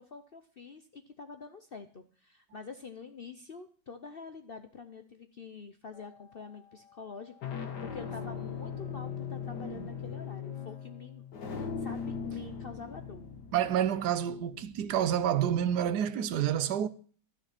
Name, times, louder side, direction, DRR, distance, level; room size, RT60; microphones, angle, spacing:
voice 1, 0.0-13.3, left 5 dB, 50° left, 0.7 m, -47 dB
sound 1, 5.9-6.4 7.2-15.8, left 6 dB, 75° left, 2.0 m, -40 dB
voice 2, 13.5-16.9, right 10 dB, 75° right, 1.3 m, -28 dB
12.5 x 6.8 x 5.9 m
omnidirectional pair, 1.8 m